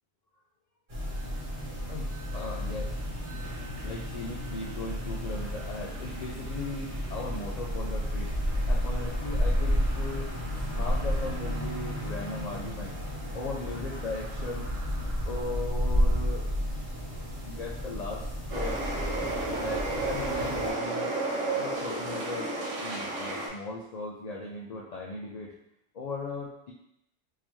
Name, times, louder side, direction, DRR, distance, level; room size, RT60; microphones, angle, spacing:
sound 1, 0.9-20.7, equal, 30° right, 1.1 m, -32 dB
voice 1, 1.9-3.0 3.8-8.3 8.7-10.3 10.7-13.0 13.3-16.5 17.4-18.9 19.6-21.1 21.6-25.5 25.9-26.7, left 3 dB, 85° left, -3 dB, 0.3 m, -38 dB
sound 2, 18.5-23.5, right 2 dB, 85° right, 1.2 m, -32 dB
3.8 x 2.8 x 3.0 m, 0.79 s
omnidirectional pair, 1.3 m